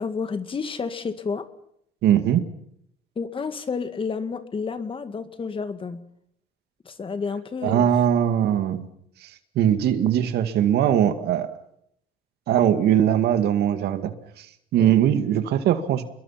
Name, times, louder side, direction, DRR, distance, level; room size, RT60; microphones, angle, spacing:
voice 1, 0.0-1.5 3.2-6.0 6.9-7.9 14.8-14.9, left 5 dB, 30° left, 10 dB, 2.1 m, -30 dB
voice 2, 2.0-2.5 7.6-8.9 9.6-11.5 12.5-14.5 14.7-16.0, right 10 dB, 75° right, 9 dB, 2.2 m, -21 dB
29.0 x 22.0 x 5.9 m, 0.74 s
cardioid pair, 110°, 17 cm